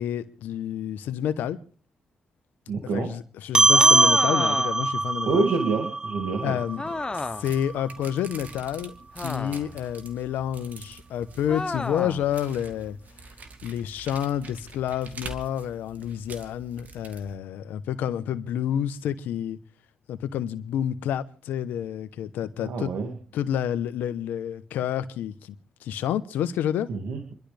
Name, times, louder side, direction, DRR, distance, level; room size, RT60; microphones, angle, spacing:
voice 1, 0.0-1.6 2.9-5.4 6.4-6.8 7.1-8.9 9.2-13.0 13.6-19.6 20.1-22.9 23.3-25.5 25.8-26.9, left 10 dB, 90° left, 0.9 m, -29 dB
voice 2, 2.7-3.1 5.3-6.6 22.6-23.2 26.9-27.4, right 4 dB, 85° right, 2.2 m, -27 dB
sound 1, 3.5-8.3, right 3 dB, 20° right, 1.4 m, -23 dB
sound 2, 3.7-4.9 6.8-7.6 9.1-9.8 11.5-12.3, left 3 dB, 25° left, 0.7 m, -32 dB
sound 3, 6.6-17.3, right 4 dB, 65° right, 2.4 m, -45 dB
28.0 x 12.0 x 3.4 m
supercardioid pair, 60°, 3 cm